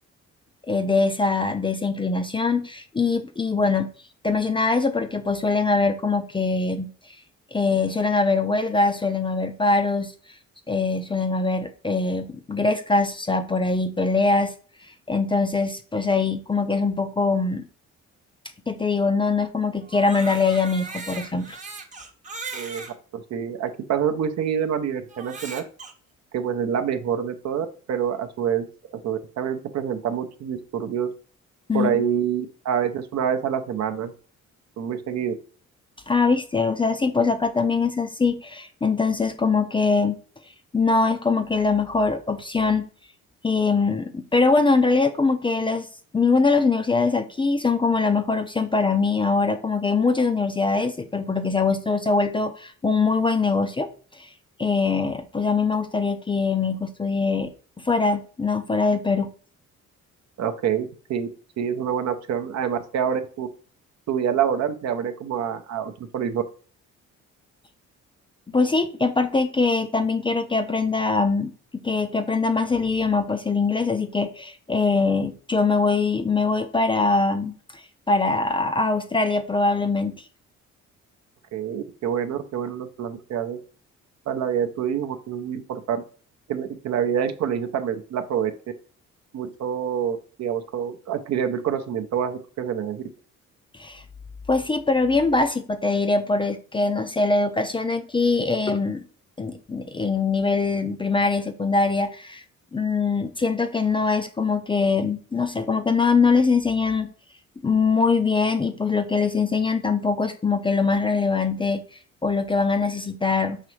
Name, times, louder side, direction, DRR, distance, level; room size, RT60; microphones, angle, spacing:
voice 1, 0.7-3.9 4.2-6.9 7.5-10.1 10.7-14.5 15.1-17.7 18.7-21.6 31.7-32.0 36.1-40.2 40.7-42.9 43.4-45.9 46.1-53.9 54.2-54.3 54.6-57.5 57.8-59.3 68.5-77.5 78.1-80.2 93.8-94.0 94.5-99.0 99.4-102.4 102.7-107.1 107.6-111.8 112.2-113.6, left 4 dB, 15° left, 7 dB, 0.4 m, -22 dB
Crying sobbing, 19.8-22.9 23.7-23.8 25.1-25.9, right 4 dB, 25° right, 0.8 m, -38 dB
voice 2, 22.5-22.8 23.1-25.6 26.3-28.7 29.0-31.1 31.7-34.1 34.8-35.3 60.4-61.3 61.6-63.5 64.1-66.4 81.5-83.6 84.3-86.0 86.5-88.5 89.3-93.0, right 8 dB, 60° right, 7 dB, 0.6 m, -26 dB
4.8 x 3.0 x 3.1 m, 0.41 s
cardioid pair, 90°, 30 cm